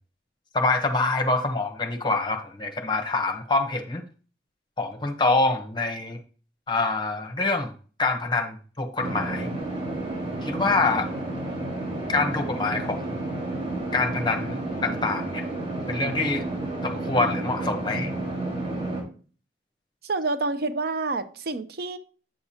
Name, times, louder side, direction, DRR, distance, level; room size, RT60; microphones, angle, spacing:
voice 1, 0.5-4.0 4.8-6.2 6.7-7.7 8.0-9.5 10.4-11.1 12.1-13.2 13.9-15.4 15.9-16.4 16.8-18.1, left 3 dB, 25° left, 4 dB, 1.0 m, -25 dB
sound 1, 9.0-19.0, right 2 dB, 45° right, 4.3 m, -31 dB
voice 2, 20.0-22.0, right 3 dB, 60° right, 10 dB, 0.6 m, -28 dB
9.0 x 6.8 x 2.8 m, 0.39 s
head